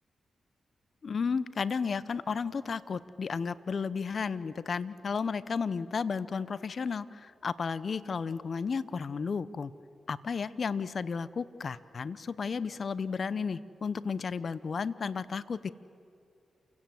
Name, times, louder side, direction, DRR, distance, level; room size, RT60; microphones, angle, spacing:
voice 1, 1.0-9.7 10.1-15.7, left 5 dB, 60° left, 17 dB, 0.7 m, -33 dB
28.5 x 16.5 x 7.7 m, 2.5 s
supercardioid pair, 50°, 0 cm